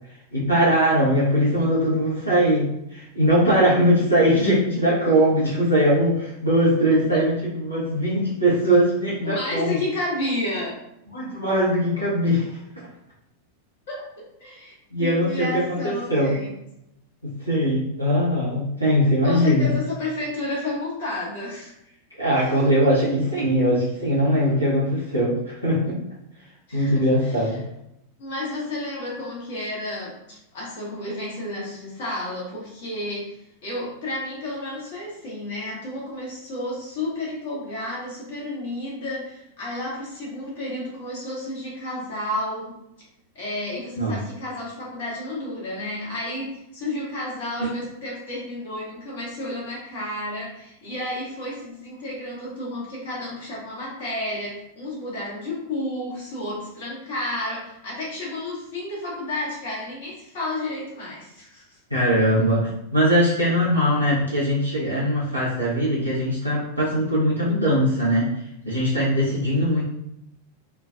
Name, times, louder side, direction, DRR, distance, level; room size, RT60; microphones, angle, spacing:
voice 1, 0.3-9.7 11.1-12.9 14.9-16.3 17.2-19.7 22.2-26.0 26.7-27.6 44.0-44.1 47.6-47.7 61.9-68.3 68.6-69.8, equal, 90° left, -9 dB, 0.9 m, -21 dB
voice 2, 9.2-10.8 13.9-16.5 19.2-21.7 22.3-22.5 26.7-27.6 28.2-42.8 43.3-61.8, left 1 dB, 55° left, -5 dB, 1.1 m, -31 dB
3.1 x 2.3 x 2.4 m, 0.81 s
figure-of-eight pair, 90°, 0 cm